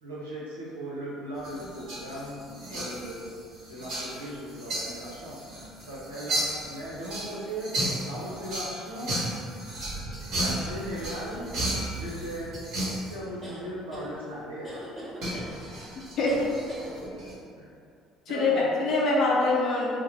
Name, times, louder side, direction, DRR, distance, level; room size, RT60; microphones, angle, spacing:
voice 1, 0.0-3.3 3.7-5.4 5.9-7.7 8.0-9.1 10.4-11.5 11.8-12.5 13.1-14.9 15.6-16.0 16.8-17.0 17.6-17.7 18.3-18.7, right 1 dB, 80° right, -7 dB, 0.6 m, -38 dB
sound 1, 1.4-13.2 15.2-17.3, right 1 dB, 50° right, 1.3 m, -34 dB
sound 2, 13.4-14.1 14.6-15.5 16.3-16.9, right 1 dB, 20° right, 1.1 m, -41 dB
voice 2, 18.3-19.9, left 2 dB, 55° left, -4 dB, 0.7 m, -24 dB
4.6 x 2.0 x 3.0 m, 2.4 s
figure-of-eight pair, 55°, 0 cm